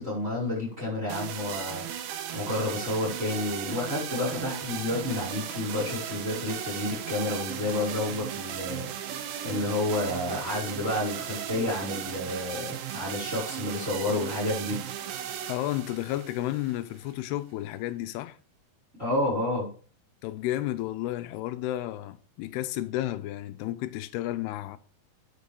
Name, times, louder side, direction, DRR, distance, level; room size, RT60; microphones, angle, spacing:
voice 1, 0.0-1.9 2.3-8.9 9.4-14.8 19.0-19.7, left 2 dB, 15° right, 5.4 m, -30 dB
sound 1, 1.1-17.1, right 9 dB, 70° right, 2.4 m, -36 dB
voice 2, 15.5-18.4 20.2-24.8, left 14 dB, 80° left, 2.6 m, -32 dB
9.8 x 6.2 x 5.3 m
omnidirectional pair, 4.8 m